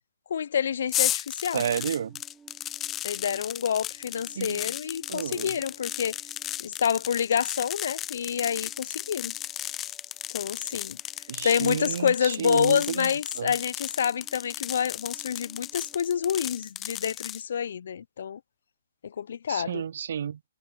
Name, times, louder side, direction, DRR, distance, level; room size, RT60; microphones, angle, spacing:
voice 1, 0.3-1.6 3.0-6.2 6.6-9.3 10.3-11.0 11.4-18.4 19.0-19.8, left 8 dB, 65° left, 0.4 m, -28 dB
sound 1, 0.9-17.4, left 12 dB, 20° left, 0.7 m, -35 dB
voice 2, 1.5-2.2 4.4-4.6 5.1-5.5 11.3-13.5 19.5-20.4, right 8 dB, 65° right, 0.3 m, -31 dB
sound 2, 1.6-16.4, right 5 dB, 10° right, 2.5 m, -59 dB
hypercardioid pair, 135°, 0 cm